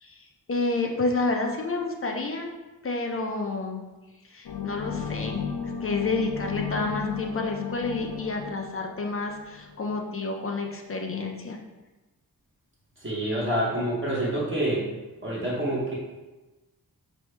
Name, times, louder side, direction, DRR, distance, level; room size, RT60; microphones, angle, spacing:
voice 1, 0.0-2.5 2.8-3.9 4.3-5.4 5.8-11.6, left 3 dB, 35° left, 1 dB, 0.5 m, -29 dB
sound 1, 4.4-9.8, left 6 dB, 85° left, 0.6 m, -34 dB
voice 2, 13.0-14.9 15.2-15.9, right 1 dB, 30° right, -6 dB, 1.0 m, -27 dB
4.3 x 2.7 x 3.2 m, 1.1 s
wide cardioid pair, 130°, 37 cm